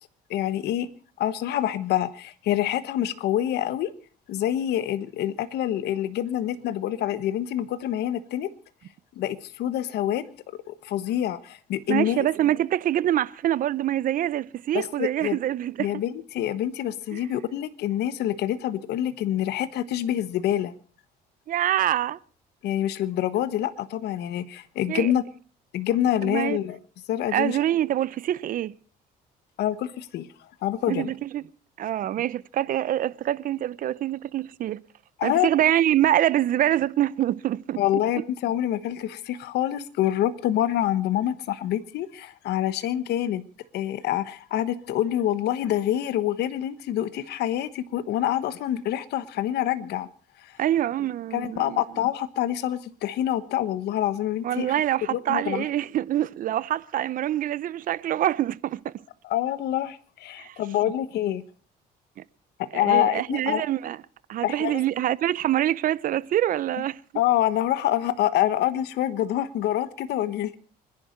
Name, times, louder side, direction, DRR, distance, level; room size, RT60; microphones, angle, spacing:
voice 1, 0.3-0.9 1.2-3.9 4.3-8.5 9.2-10.3 10.7-12.3 14.7-15.4 15.8-20.7 22.6-25.2 25.7-26.8 27.1-27.6 29.6-30.3 30.6-31.1 35.2-35.5 37.8-43.4 43.7-50.1 51.3-54.7 55.1-55.6 59.2-61.4 62.7-63.6 64.4-64.8 67.1-70.6, left 12 dB, 75° left, 1.2 m, -26 dB
voice 2, 11.9-15.9 17.1-17.2 21.5-22.2 24.9-25.1 26.2-26.6 27.3-28.7 30.9-31.4 31.8-34.8 35.2-37.8 38.2-38.3 50.6-51.8 54.4-58.9 60.4-60.6 60.8-60.9 62.7-64.0 64.3-67.0, right 12 dB, 55° right, 0.7 m, -25 dB
26.5 x 10.5 x 4.4 m
cardioid pair, 110°, 17 cm